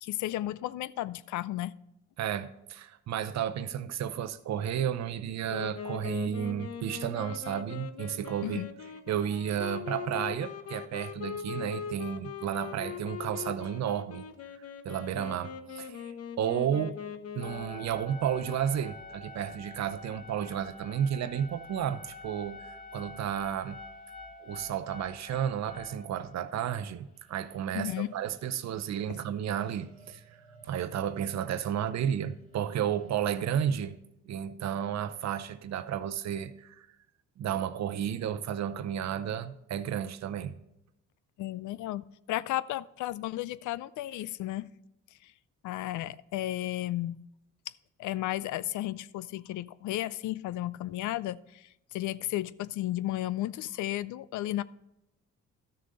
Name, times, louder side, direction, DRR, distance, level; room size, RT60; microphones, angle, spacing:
voice 1, 0.0-1.8 8.4-8.7 27.7-28.1 41.4-44.7 45.2-45.3 45.6-47.2 48.0-54.6, left 15 dB, 75° left, 0.5 m, -34 dB
voice 2, 2.2-8.6 9.1-14.2 14.8-17.0 17.3-23.8 24.4-34.0 34.2-36.9 37.4-40.6, right 9 dB, 60° right, 0.7 m, -32 dB
Wind instrument woodwind instrument, 5.5-17.9, left 7 dB, 55° left, 0.9 m, -41 dB
sound 1, 17.4-26.8 27.5-27.6 27.8-27.9 29.4-32.2 32.5-33.9, left 3 dB, 25° left, 2.1 m, -48 dB
12.5 x 6.5 x 3.9 m
cardioid pair, 90°, 30 cm